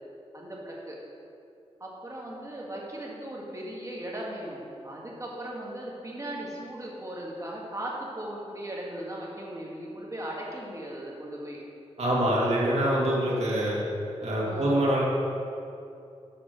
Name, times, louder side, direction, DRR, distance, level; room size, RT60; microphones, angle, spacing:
voice 1, 0.3-1.0 1.8-11.6 14.4-14.8, right 1 dB, 30° right, -3 dB, 1.9 m, -38 dB
voice 2, 12.0-13.8 14.2-15.0, right 1 dB, 75° right, -5 dB, 2.1 m, -25 dB
7.1 x 6.0 x 6.5 m, 2.6 s
wide cardioid pair, 75°, 11 cm